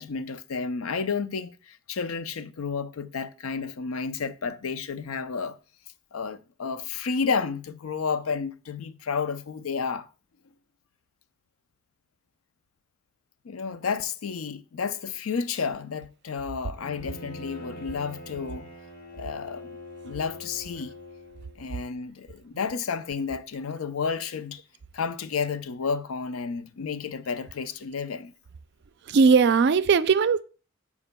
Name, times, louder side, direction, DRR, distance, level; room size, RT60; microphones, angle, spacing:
voice 1, 0.0-5.6 6.1-10.1 13.4-18.7 19.1-19.8 20.0-20.9 21.6-24.6 24.9-28.3, left 5 dB, 85° left, 0.5 m, -31 dB
Bowed string instrument, 16.8-21.6, left 1 dB, 45° left, 1.5 m, -43 dB
voice 2, 29.1-30.4, right 5 dB, 55° right, 0.4 m, -19 dB
12.0 x 4.8 x 2.2 m
head